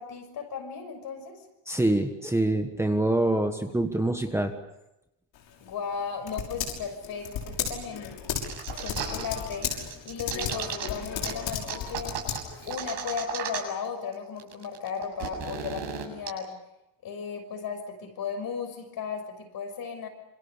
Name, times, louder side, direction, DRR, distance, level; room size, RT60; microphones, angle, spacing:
voice 1, 0.0-1.4 5.6-8.2 8.8-9.7 10.0-12.2 12.7-16.5 17.0-20.1, left 6 dB, 55° left, 6 dB, 6.1 m, -35 dB
voice 2, 1.7-4.5, right 1 dB, 5° right, 5 dB, 1.4 m, -25 dB
Typing, 5.3-12.8, left 8 dB, 85° left, 6.2 m, -35 dB
sound 1, 8.4-9.3 9.5-10.9 11.2-11.3 11.7-13.9 14.1-14.2 14.4-16.3, right 8 dB, 75° right, 7.7 m, -34 dB
27.5 x 27.0 x 6.8 m, 0.89 s
cardioid pair, 160°, 43 cm